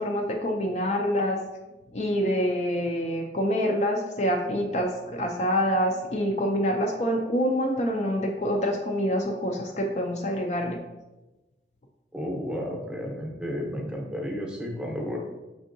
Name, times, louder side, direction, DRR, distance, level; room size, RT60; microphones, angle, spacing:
voice 1, 0.0-1.4 1.9-10.8, equal, 35° left, 1 dB, 0.4 m, -26 dB
voice 2, 12.1-15.2, equal, 5° right, -1 dB, 0.7 m, -32 dB
5.5 x 3.6 x 2.5 m, 1.1 s
head